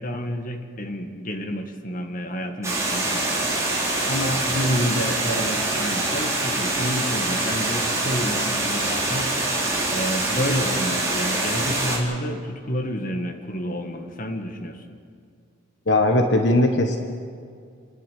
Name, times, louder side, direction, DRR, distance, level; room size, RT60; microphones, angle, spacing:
voice 1, 0.0-3.2 4.1-9.3 9.9-14.8, equal, 45° left, 4 dB, 1.7 m, -29 dB
Water, 2.6-12.0, right 2 dB, 15° right, 3.8 m, -25 dB
voice 2, 15.9-17.0, left 1 dB, 60° left, 3 dB, 1.5 m, -19 dB
28.5 x 10.5 x 9.4 m, 2.2 s
head